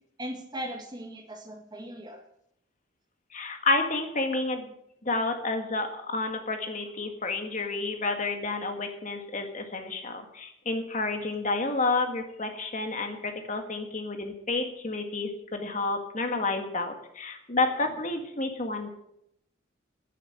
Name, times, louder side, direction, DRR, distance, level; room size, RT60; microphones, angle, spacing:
voice 1, 0.2-2.2, right 1 dB, 20° right, 4 dB, 1.7 m, -38 dB
voice 2, 3.3-4.7 5.0-18.9, left 3 dB, 40° left, 5 dB, 1.8 m, -30 dB
10.5 x 10.5 x 8.8 m, 0.77 s
head